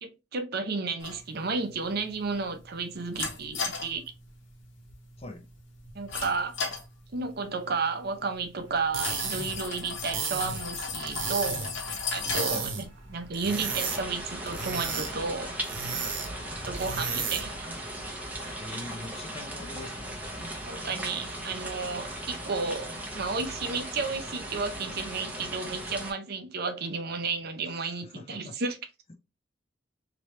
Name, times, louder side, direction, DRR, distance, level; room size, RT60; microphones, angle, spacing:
voice 1, 0.0-4.0 5.9-6.6 7.1-11.7 12.1-15.5 16.5-17.7 20.7-28.8, right 4 dB, 55° right, 0.6 m, -32 dB
sound 1, 1.0-14.3, left 4 dB, 85° left, 1.2 m, -38 dB
sound 2, 8.7-17.6, right 5 dB, 90° right, 1.0 m, -35 dB
sound 3, 13.5-26.1, right 1 dB, 10° right, 0.7 m, -38 dB
voice 2, 18.6-20.1 27.7-28.6 29.1-29.2, left 2 dB, 30° left, 0.6 m, -43 dB
3.2 x 2.9 x 3.0 m
head